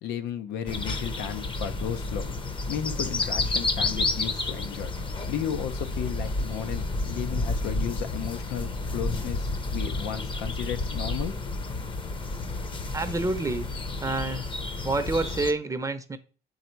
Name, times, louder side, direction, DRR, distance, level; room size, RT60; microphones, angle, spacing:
voice 1, 0.0-2.3 2.7-4.9 5.3-11.6, left 9 dB, 85° left, 0.8 m, -34 dB
sound 1, 0.7-15.5, left 2 dB, 30° left, 0.7 m, -31 dB
voice 2, 12.9-13.7 14.0-14.4 14.8-16.2, right 2 dB, 20° right, 0.6 m, -28 dB
7.2 x 4.1 x 4.5 m
cardioid pair, 110°, 17 cm